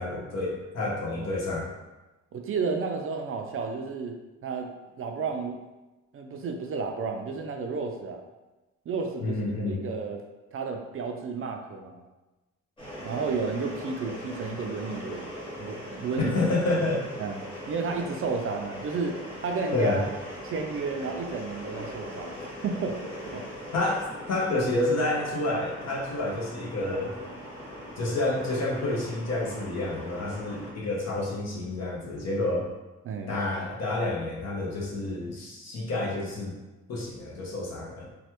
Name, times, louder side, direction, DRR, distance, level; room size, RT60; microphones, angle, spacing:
voice 1, 0.0-1.7 9.2-9.8 16.2-17.1 19.7-20.0 23.7-27.2 28.0-32.7 33.3-36.5 36.9-38.1, left 2 dB, 60° left, -2 dB, 0.9 m, -29 dB
voice 2, 2.3-4.2 4.4-5.6 6.1-8.2 8.9-10.2 10.5-12.0 13.0-15.3 15.6-16.4 17.2-17.4 17.7-20.0 20.4-23.0 23.3-23.6 33.1-33.3, right 4 dB, 45° right, 3 dB, 0.4 m, -32 dB
sound 1, 12.8-30.7, equal, 15° left, 1.2 m, -40 dB
3.2 x 2.2 x 2.9 m, 1.1 s
cardioid pair, 90°, 30 cm